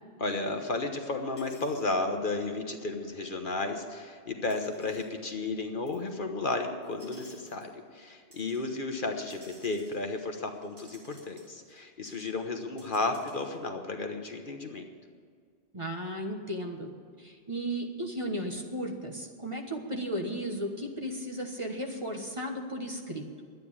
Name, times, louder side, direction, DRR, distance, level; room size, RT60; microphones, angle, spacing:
voice 1, 0.2-14.9, left 3 dB, 50° left, 4 dB, 1.1 m, -33 dB
sound 1, 1.4-1.8 2.9-3.0 4.5-5.1 5.9-6.1 6.8-7.7 8.3-8.7 9.2-11.8 12.1-12.3 12.6-13.6, right 1 dB, 80° right, 3.8 m, -57 dB
voice 2, 15.7-16.9 17.2-23.3, equal, 30° right, 2 dB, 1.3 m, -35 dB
11.5 x 9.3 x 8.6 m, 2.1 s
omnidirectional pair, 1.2 m